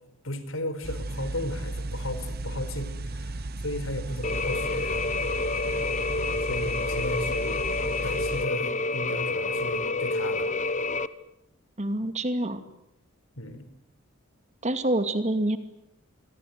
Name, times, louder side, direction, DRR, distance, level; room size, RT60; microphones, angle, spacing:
voice 1, 0.2-5.0 6.4-7.7 8.0-10.5 13.4-13.7, left 1 dB, 75° left, 10 dB, 4.7 m, -35 dB
sound 1, 0.8-8.5, right 2 dB, 50° right, 1.0 m, -35 dB
sound 2, 4.2-11.1, left 3 dB, 35° left, 1.1 m, -28 dB
voice 2, 11.8-12.6 14.6-15.6, right 1 dB, 35° right, 9 dB, 2.4 m, -26 dB
27.0 x 22.5 x 9.6 m, 0.83 s
head